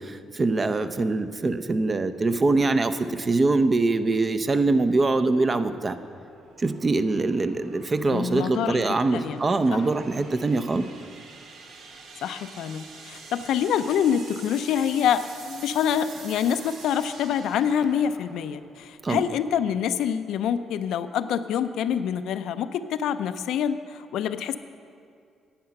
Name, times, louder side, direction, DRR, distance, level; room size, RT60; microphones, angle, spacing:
voice 1, 0.0-5.9 6.6-10.9 19.0-19.2, right 3 dB, 35° right, 10 dB, 0.6 m, -23 dB
sound 1, 3.8-19.2, right 4 dB, 75° right, 1.1 m, -47 dB
voice 2, 8.1-9.4 9.7-9.9 12.2-24.6, left 8 dB, 80° left, 11 dB, 0.4 m, -26 dB
10.5 x 8.6 x 5.8 m, 2.3 s
cardioid pair, 90°, 0 cm